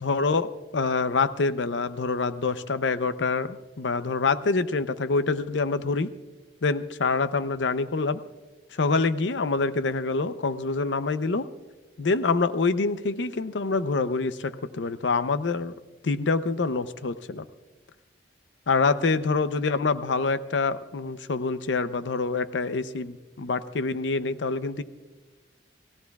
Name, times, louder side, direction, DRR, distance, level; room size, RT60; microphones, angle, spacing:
voice 1, 0.0-6.1 6.6-8.2 8.7-11.5 12.0-15.7 16.0-17.5 18.7-24.8, left 4 dB, 85° left, 12 dB, 0.6 m, -26 dB
29.0 x 16.5 x 2.4 m, 1.2 s
head